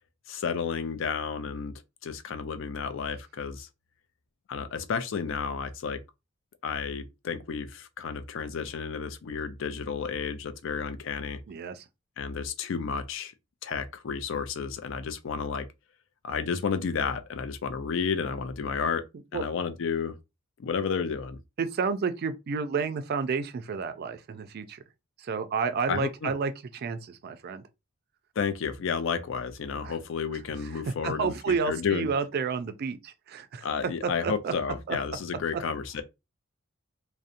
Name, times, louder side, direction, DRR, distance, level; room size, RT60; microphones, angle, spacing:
voice 1, 0.3-1.7 2.0-3.7 4.5-6.0 6.6-11.4 12.2-13.3 13.6-15.7 16.2-19.0 19.3-20.1 20.6-21.4 25.9-26.3 28.4-32.1 33.6-36.0, left 6 dB, 65° left, 0.4 m, -31 dB
voice 2, 11.5-11.8 19.3-19.4 21.6-24.8 25.2-27.6 29.8-30.0 30.6-33.7 34.0-34.5 34.9-35.0 35.5-35.6, right 5 dB, 50° right, 0.3 m, -31 dB
2.7 x 2.1 x 2.5 m
head